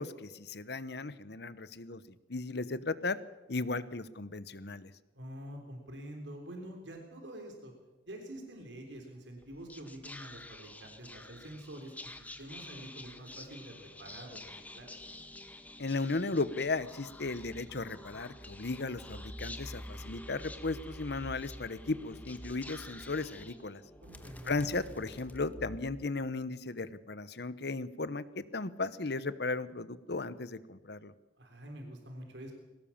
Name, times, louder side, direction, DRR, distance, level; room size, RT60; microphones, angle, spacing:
voice 1, 0.0-2.0 2.3-3.2 3.5-4.9 15.8-23.8 24.4-31.1, left 3 dB, 60° left, 15 dB, 1.0 m, -36 dB
voice 2, 5.1-7.7 8.1-14.9 24.0-24.5 31.4-32.5, right 1 dB, 75° right, 3 dB, 3.6 m, -47 dB
Whispering, 9.4-26.0, left 2 dB, 10° left, 1.2 m, -50 dB
sound 1, 17.2-26.0, equal, 15° right, 1.9 m, -49 dB
21.5 x 18.0 x 7.2 m, 1.1 s
head